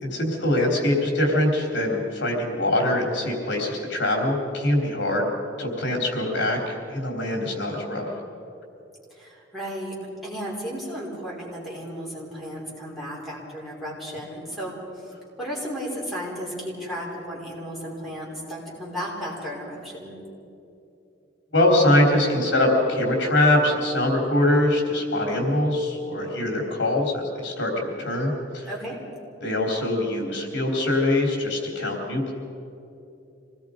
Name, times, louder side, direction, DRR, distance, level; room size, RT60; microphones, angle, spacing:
voice 1, 0.0-5.2 5.6-8.1 21.5-28.7 29.4-32.3, left 1 dB, 70° left, 0 dB, 3.9 m, -23 dB
voice 2, 9.1-10.0 10.2-14.8 15.4-20.2 28.7-29.0, equal, ahead, -6 dB, 5.6 m, -34 dB
26.5 x 19.5 x 5.2 m, 2.8 s
head